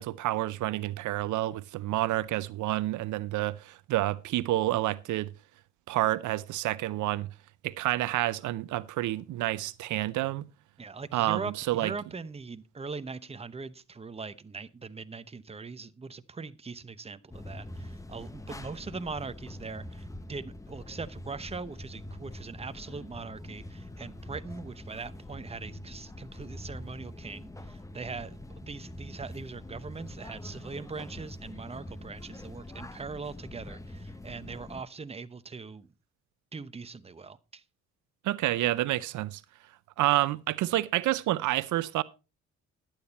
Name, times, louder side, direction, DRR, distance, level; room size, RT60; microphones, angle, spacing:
voice 1, 0.0-5.3 5.9-7.3 7.6-10.5 11.1-11.9 38.2-39.4 40.0-42.0, right 16 dB, 80° right, 0.6 m, -29 dB
voice 2, 10.8-35.9 36.5-37.6, right 4 dB, 20° right, 0.8 m, -41 dB
sound 1, 17.3-34.8, left 1 dB, 10° left, 0.9 m, -44 dB
11.5 x 8.9 x 4.1 m
cardioid pair, 90°, 30 cm